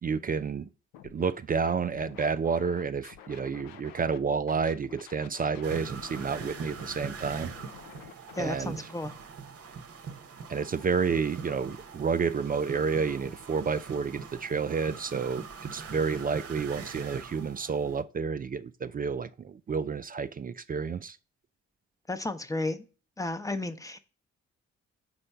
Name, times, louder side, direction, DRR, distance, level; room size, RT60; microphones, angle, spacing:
voice 1, 0.0-0.7 1.0-7.6 8.4-8.8 10.5-21.2, right 5 dB, 25° right, 0.4 m, -30 dB
Scratching (performance technique), 0.9-1.3 1.6-4.2 4.5-8.7, left 9 dB, 70° left, 0.6 m, -49 dB
sound 1, 5.6-18.0, right 5 dB, 40° right, 0.9 m, -43 dB
voice 2, 8.4-9.2 22.1-22.8 23.2-24.0, left 2 dB, 10° left, 0.9 m, -33 dB
6.2 x 4.4 x 5.5 m
hypercardioid pair, 40°, 35 cm